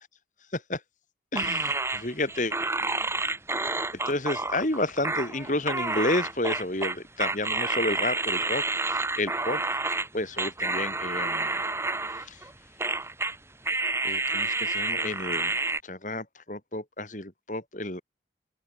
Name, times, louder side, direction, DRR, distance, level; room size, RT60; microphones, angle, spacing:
voice 1, 1.3-2.5 3.9-9.6 10.1-11.6 12.2-12.4 14.0-15.5 15.8-18.0, left 2 dB, 45° left, 4.3 m, -31 dB
sound 1, 1.4-10.1 10.4-12.5 12.8-13.4 13.7-15.8, right 3 dB, 15° right, 5.5 m, -29 dB
head